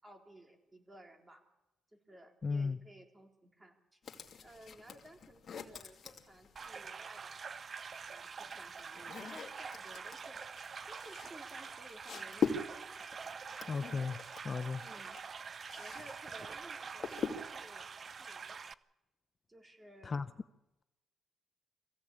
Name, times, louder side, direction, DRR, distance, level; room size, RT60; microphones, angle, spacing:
voice 1, 0.0-1.4 1.9-4.0 4.4-7.6 8.1-10.4 10.9-12.7 14.8-15.2 15.7-18.7 19.5-20.2, right 1 dB, 20° right, 4.0 m, -56 dB
voice 2, 2.4-2.8 13.7-14.2 14.4-14.8 20.0-20.3, left 4 dB, 35° left, 0.7 m, -34 dB
sound 1, 4.0-6.9 7.9-16.1 16.4-17.7, left 5 dB, 50° left, 2.4 m, -42 dB
sound 2, 6.6-18.7, right 5 dB, 45° right, 0.7 m, -46 dB
23.5 x 15.5 x 8.6 m
cardioid pair, 90°, 0 cm